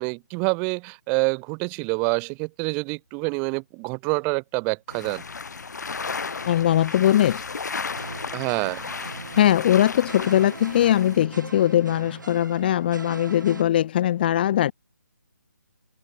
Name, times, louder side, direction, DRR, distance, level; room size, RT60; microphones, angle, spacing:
voice 1, 0.0-5.2 8.3-8.8, right 35 dB, 20° right, 1.6 m, -27 dB
sound 1, 4.9-11.3, left 5 dB, 65° left, 2.0 m, -34 dB
voice 2, 6.5-7.4 9.4-14.7, left 11 dB, 30° left, 0.7 m, -20 dB
sound 2, 7.9-13.6, right 3 dB, 75° right, 3.1 m, -40 dB
figure-of-eight pair, 150°, 10 cm